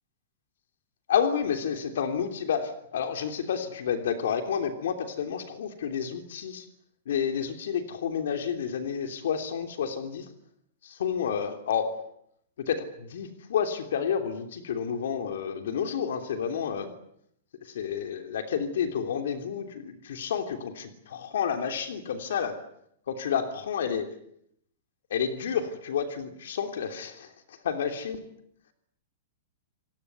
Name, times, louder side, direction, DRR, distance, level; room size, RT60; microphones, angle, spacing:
voice 1, 1.1-6.7 7.1-10.3 10.8-12.0 12.7-16.9 17.6-22.5 23.1-24.0 25.1-28.2, left 7 dB, 70° left, 7 dB, 3.3 m, -30 dB
28.5 x 18.5 x 9.6 m, 0.73 s
supercardioid pair, 175°, 0 cm